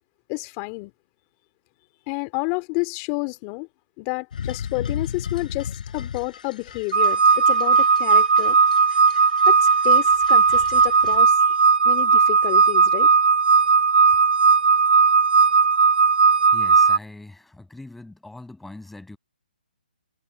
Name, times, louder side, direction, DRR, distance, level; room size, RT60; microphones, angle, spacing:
voice 1, 0.3-0.9 2.1-3.7 4.0-8.6 9.5-9.6 9.8-11.5 11.8-13.1, left 31 dB, 25° left, 2.8 m, -30 dB
sound 1, 4.3-11.2, left 7 dB, 55° left, 5.5 m, -36 dB
sound 2, 6.9-17.0, right 5 dB, 85° right, 0.4 m, -17 dB
voice 2, 16.5-19.2, left 2 dB, 5° left, 6.9 m, -42 dB
hypercardioid pair, 145°, 5 cm